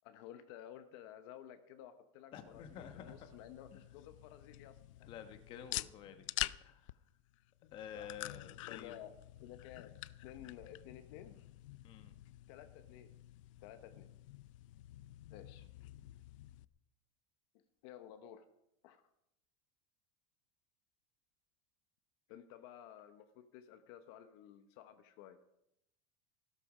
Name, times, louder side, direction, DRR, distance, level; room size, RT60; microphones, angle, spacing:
voice 1, 0.0-5.1 5.6-5.9 7.6-8.1 8.7-11.4 12.5-13.1 13.6-14.1 15.3-15.7 17.8-18.5 18.8-19.0 22.3-25.4, left 10 dB, 55° left, 9 dB, 1.1 m, -54 dB
voice 2, 2.3-3.2 5.1-6.3 6.6-6.8 7.7-8.9 11.8-12.1, left 8 dB, 30° left, 8 dB, 1.2 m, -50 dB
sound 1, 2.4-16.6, left 17 dB, 80° left, 0.5 m, -48 dB
16.0 x 13.0 x 5.0 m, 0.83 s
supercardioid pair, 175°, 16 cm